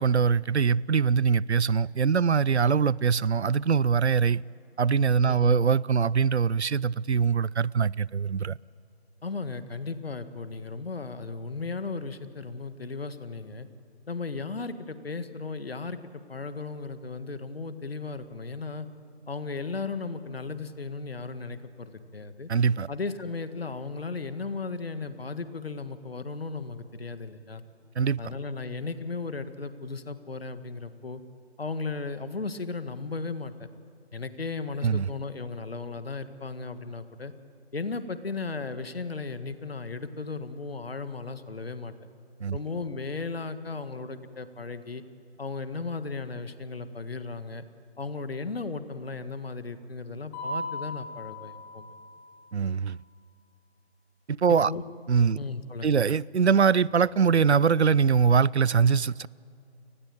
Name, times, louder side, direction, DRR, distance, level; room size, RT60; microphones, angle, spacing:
voice 1, 0.0-4.4 4.8-8.6 22.5-22.9 28.0-28.2 34.8-35.1 42.4-42.6 52.5-53.0 54.3-54.7 55.1-55.4 55.8-59.3, right 6 dB, 80° right, 0.6 m, -23 dB
voice 2, 5.3-5.6 9.2-13.7 14.1-16.0 16.3-18.9 19.3-22.5 22.9-27.6 28.2-31.2 31.6-33.5 34.1-37.3 37.7-41.9 42.5-45.0 45.4-47.6 48.0-51.8 54.5-54.8 55.4-56.0, left 4 dB, 65° left, 1.8 m, -35 dB
Mallet percussion, 50.3-52.4, left 1 dB, 15° left, 4.1 m, -37 dB
29.5 x 19.5 x 8.8 m
figure-of-eight pair, 160°, 33 cm